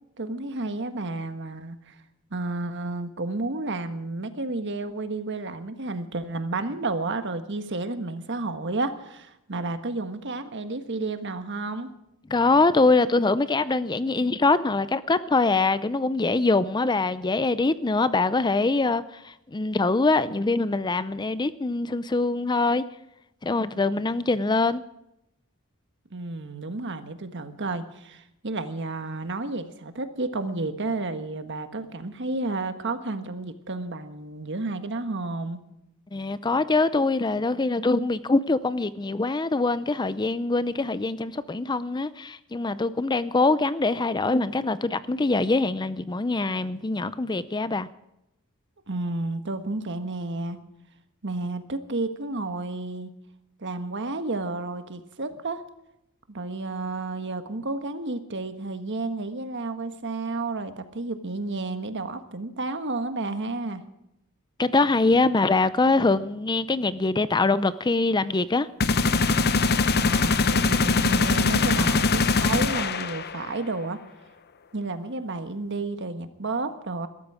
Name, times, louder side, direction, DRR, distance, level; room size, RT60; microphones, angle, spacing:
voice 1, 0.2-2.0 2.3-11.9 26.1-35.6 48.9-50.6 51.2-53.1 53.6-55.6 56.3-63.8 69.9-74.0 74.7-77.1, right 2 dB, 55° right, 1.5 m, -31 dB
voice 2, 12.3-22.9 23.4-24.8 36.1-47.9 64.6-68.7, left 3 dB, 20° left, 0.5 m, -23 dB
sound 1, 68.8-73.5, left 4 dB, 50° left, 0.8 m, -22 dB
21.5 x 13.0 x 4.9 m
head